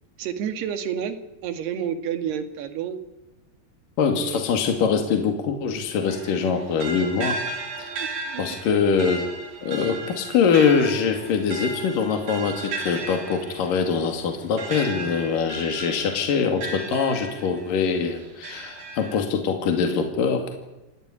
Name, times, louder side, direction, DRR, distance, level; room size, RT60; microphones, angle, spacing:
voice 1, 0.2-3.0 4.1-4.4 8.0-8.4 8.7-8.8, right 8 dB, 85° right, 8 dB, 4.0 m, -30 dB
voice 2, 4.0-7.4 7.8-8.0 8.4-9.2 9.6-20.4, left 6 dB, 60° left, 4 dB, 3.9 m, -23 dB
sound 1, 6.1-17.8 18.2-19.2, right 3 dB, 65° right, 5.1 m, -35 dB
28.5 x 15.5 x 9.9 m, 1.0 s
omnidirectional pair, 4.6 m